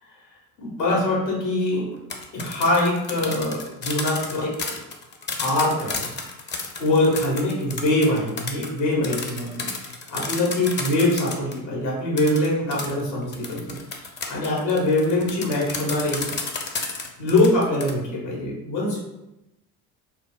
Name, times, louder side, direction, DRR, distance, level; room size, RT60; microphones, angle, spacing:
voice 1, 0.6-1.9 2.3-4.7 5.4-6.1 6.8-13.8 14.0-16.3 17.2-19.0, left 1 dB, 80° left, -3 dB, 1.2 m, -23 dB
sound 1, 1.9-11.6 12.2-17.9, left 4 dB, 25° left, 0.5 m, -32 dB
2.7 x 2.0 x 3.5 m, 0.93 s
hypercardioid pair, 55°, 50 cm